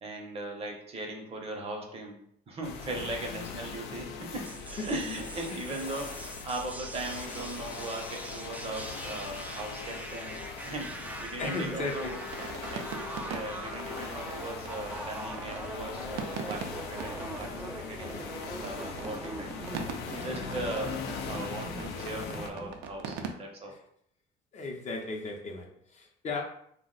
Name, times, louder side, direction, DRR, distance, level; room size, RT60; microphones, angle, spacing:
voice 1, 0.0-2.2 2.5-10.4 10.6-12.2 12.7-18.2 18.6-19.6 20.1-23.8, right 2 dB, 35° right, 2 dB, 0.7 m, -39 dB
sound 1, 2.6-22.5, left 5 dB, 90° left, 0.4 m, -41 dB
sound 2, 3.5-7.9 8.1-8.2 8.4-8.7 8.9-9.9 10.3-23.3, right 5 dB, 85° right, 0.4 m, -44 dB
sound 3, 4.4-22.9, right 1 dB, 10° right, 0.3 m, -43 dB
voice 2, 11.4-12.2 20.0-20.4 23.7-23.8 24.5-26.4, left 3 dB, 45° left, 2 dB, 0.6 m, -36 dB
2.4 x 2.1 x 3.8 m, 0.68 s
cardioid pair, 110°, 17 cm